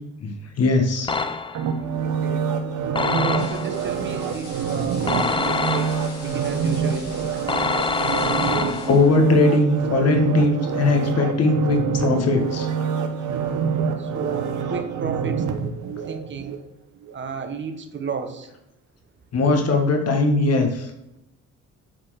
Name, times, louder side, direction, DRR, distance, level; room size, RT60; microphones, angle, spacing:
voice 1, 0.6-1.1 8.9-12.7 19.3-20.9, left 3 dB, 55° left, 4 dB, 1.5 m, -19 dB
sound 1, 1.1-1.8 2.9-3.8 5.1-6.3 7.5-9.1, left 4 dB, 15° left, 0.5 m, -25 dB
sound 2, 1.5-16.6 17.0-17.1, right 6 dB, 75° right, 1.0 m, -26 dB
voice 2, 2.0-2.5 3.0-7.3 14.0-15.5 16.1-16.6 17.1-18.5, right 5 dB, 40° right, 6 dB, 1.2 m, -33 dB
sound 3, 3.3-9.2, left 2 dB, 85° left, 3.6 m, -42 dB
8.1 x 4.4 x 6.4 m, 0.88 s
cardioid pair, 90°, 30 cm